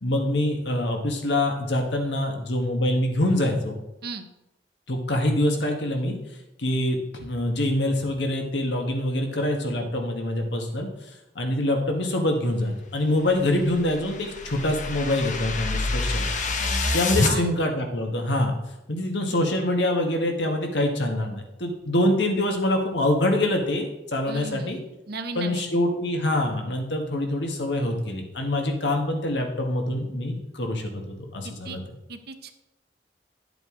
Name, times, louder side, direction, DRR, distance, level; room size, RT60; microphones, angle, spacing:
voice 1, 0.0-3.8 4.9-6.2 6.6-10.9 11.3-16.3 16.9-18.5 18.9-24.8 25.3-31.8, left 1 dB, 70° left, 3 dB, 1.5 m, -25 dB
sound 1, 13.3-17.3, left 3 dB, 45° left, 0.9 m, -27 dB
voice 2, 16.6-17.6 24.3-25.8 31.4-31.8 32.1-32.5, right 3 dB, 60° right, 8 dB, 0.8 m, -36 dB
10.5 x 7.8 x 3.8 m, 0.94 s
head